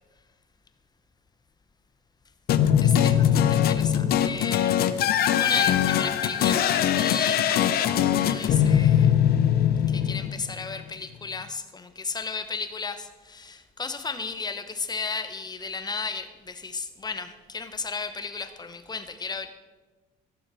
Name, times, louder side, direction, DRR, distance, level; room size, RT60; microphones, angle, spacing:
sound 1, 2.5-10.7, left 10 dB, 65° left, 0.7 m, -21 dB
voice 1, 2.8-9.2 9.9-19.5, left 4 dB, 25° left, 9 dB, 1.0 m, -34 dB
14.5 x 7.2 x 6.3 m, 1.3 s
cardioid pair, 110°, 17 cm